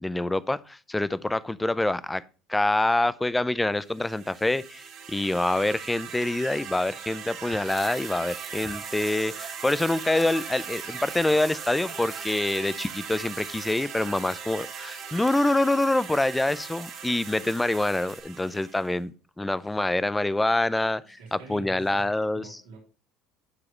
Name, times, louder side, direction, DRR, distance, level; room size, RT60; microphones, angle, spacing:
voice 1, 0.0-2.2 2.5-19.1 19.4-22.6, left 2 dB, 10° left, 0.5 m, -26 dB
sound 1, 3.9-19.0, right 7 dB, 60° right, 1.8 m, -40 dB
sound 2, 7.7-18.2, right 4 dB, 25° right, 2.0 m, -44 dB
voice 2, 21.2-22.8, right 4 dB, 85° right, 3.1 m, -46 dB
11.0 x 4.9 x 3.2 m
hypercardioid pair, 85°, 0 cm